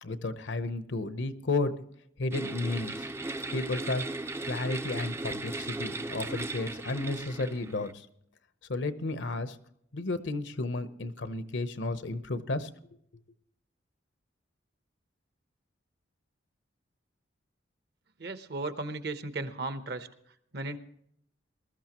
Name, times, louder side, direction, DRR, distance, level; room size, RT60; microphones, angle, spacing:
voice 1, 0.0-1.7 2.2-3.1 3.5-4.0 4.4-8.1 8.7-9.6 9.9-12.7, left 2 dB, 70° left, 12 dB, 0.8 m, -32 dB
sound 1, 2.3-7.9, right 2 dB, 15° right, 0.4 m, -37 dB
voice 2, 18.2-20.1 20.5-20.8, right 2 dB, 55° right, 10 dB, 0.9 m, -35 dB
21.0 x 13.0 x 3.0 m, 0.71 s
head